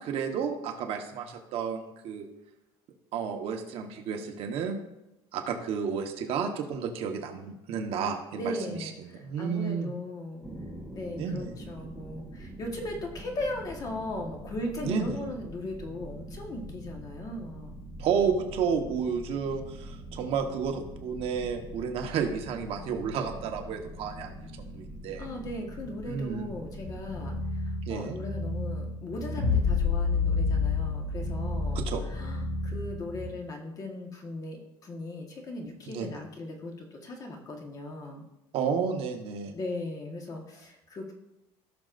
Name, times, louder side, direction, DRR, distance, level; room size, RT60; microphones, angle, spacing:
voice 1, 0.0-2.3 3.1-4.8 5.3-9.9 11.2-11.5 14.8-15.1 18.0-25.2 26.0-26.5 27.9-28.2 31.7-32.0 35.9-36.1 38.5-39.5, right 6 dB, 50° right, 3 dB, 1.2 m, -31 dB
voice 2, 8.4-10.4 10.9-17.8 25.2-38.2 39.5-41.1, left 1 dB, 30° left, 2 dB, 1.4 m, -38 dB
sound 1, 10.4-27.4, right 1 dB, 5° left, 1.1 m, -44 dB
sound 2, 26.8-33.3, equal, 70° left, 1.7 m, -35 dB
sound 3, 29.4-32.8, left 6 dB, 85° left, 3.6 m, -28 dB
17.0 x 6.3 x 2.6 m, 0.93 s
cardioid pair, 160°, 12 cm